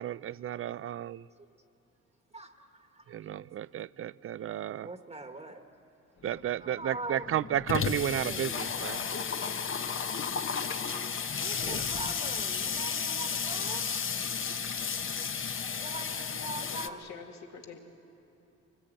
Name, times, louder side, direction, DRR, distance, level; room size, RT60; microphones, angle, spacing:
voice 1, 0.0-1.3 3.1-4.9 6.2-9.0 10.9-11.0 11.6-11.8, right 11 dB, 45° right, 19 dB, 0.4 m, -33 dB
voice 2, 2.3-3.2 4.8-5.6 6.3-7.4 8.1-8.9 11.4-13.9 15.7-17.1, right 2 dB, 20° right, 5 dB, 1.3 m, -43 dB
Water tap faucet / Sink (filling or washing), 6.3-6.4 6.6-6.7 7.0-16.9, left 6 dB, 45° left, 1.0 m, -33 dB
voice 3, 8.8-9.5 16.7-17.8, left 5 dB, 65° left, 2 dB, 2.3 m, -46 dB
25.0 x 20.0 x 8.8 m, 2.9 s
cardioid pair, 90°, 30 cm